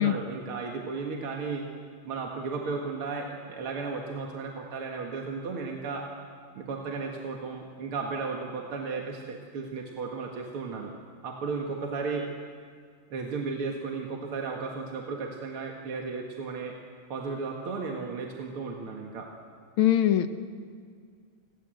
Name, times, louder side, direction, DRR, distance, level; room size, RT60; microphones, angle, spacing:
voice 1, 0.0-1.6 2.0-6.1 6.6-10.9 11.2-12.3 13.1-16.8 17.1-19.3, right 4 dB, 75° right, 1 dB, 2.7 m, -34 dB
voice 2, 19.8-20.3, left 12 dB, 70° left, 10 dB, 1.9 m, -21 dB
30.0 x 21.0 x 7.8 m, 2.1 s
omnidirectional pair, 2.4 m